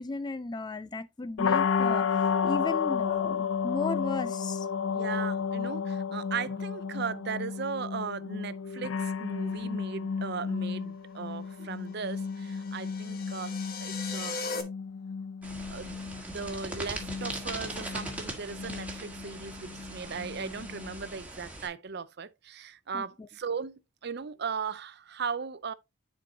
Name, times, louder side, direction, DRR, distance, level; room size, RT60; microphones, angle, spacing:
voice 1, 0.0-4.7 22.9-23.3, left 3 dB, 20° left, 0.3 m, -35 dB
sound 1, 1.4-21.2, left 6 dB, 70° left, 0.5 m, -32 dB
voice 2, 4.9-14.4 15.7-16.0 16.3-25.7, right 5 dB, 50° right, 0.5 m, -37 dB
sound 2, 12.0-14.6, left 4 dB, 45° left, 1.2 m, -38 dB
sound 3, 15.4-21.7, right 2 dB, 5° right, 1.6 m, -40 dB
10.0 x 4.6 x 2.8 m
head